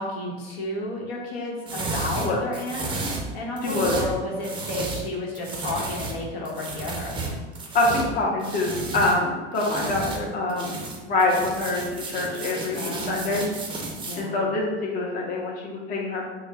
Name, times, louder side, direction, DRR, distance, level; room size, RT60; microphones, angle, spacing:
voice 1, 0.0-7.2 12.7-13.4 14.0-14.4, left 1 dB, 75° left, -2 dB, 1.0 m, -32 dB
sound 1, 1.7-5.1 5.3-9.2 9.5-10.2 10.5-14.2, right 2 dB, 15° right, 0.5 m, -33 dB
voice 2, 3.6-4.0 7.7-10.7 11.0-13.4 14.1-14.6 14.9-16.3, left 2 dB, 25° left, -2 dB, 0.6 m, -25 dB
4.2 x 2.1 x 2.7 m, 1.3 s
supercardioid pair, 120°, 31 cm